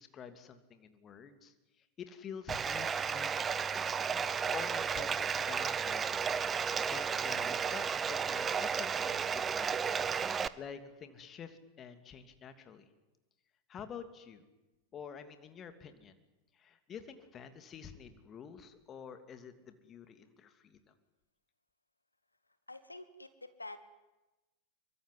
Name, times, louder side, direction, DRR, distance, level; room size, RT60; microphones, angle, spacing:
voice 1, 0.0-3.7 4.1-6.6 6.9-12.9 13.7-14.4 14.9-16.2 16.5-20.8, left 7 dB, 25° left, 9 dB, 2.9 m, -48 dB
Bathtub (filling or washing), 2.5-10.5, right 6 dB, 20° right, 1.0 m, -33 dB
voice 2, 22.7-23.8, left 2 dB, 85° left, 13 dB, 1.4 m, -47 dB
25.5 x 23.5 x 9.5 m, 1.1 s
figure-of-eight pair, 90°, 0 cm